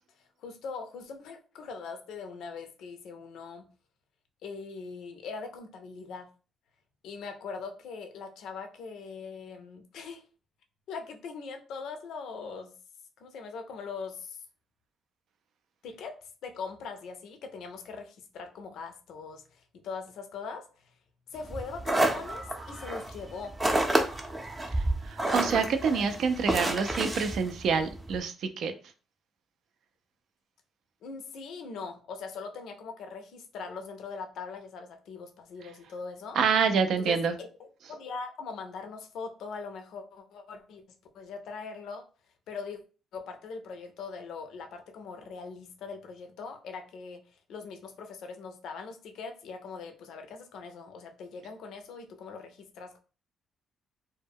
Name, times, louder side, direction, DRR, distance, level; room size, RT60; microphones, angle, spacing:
voice 1, 0.4-3.7 4.4-6.3 7.0-10.2 10.9-12.7 13.2-14.4 15.8-20.7 21.3-23.6 31.0-36.4 37.0-40.8 41.1-42.0 42.5-42.8 43.1-47.2 47.5-53.0, left 5 dB, 80° left, 0.5 m, -41 dB
sound 1, 21.4-28.2, right 1 dB, 15° right, 0.5 m, -30 dB
voice 2, 25.0-28.7 36.4-37.4, right 6 dB, 70° right, 0.4 m, -27 dB
2.1 x 2.1 x 3.4 m
cardioid pair, 90°, 0 cm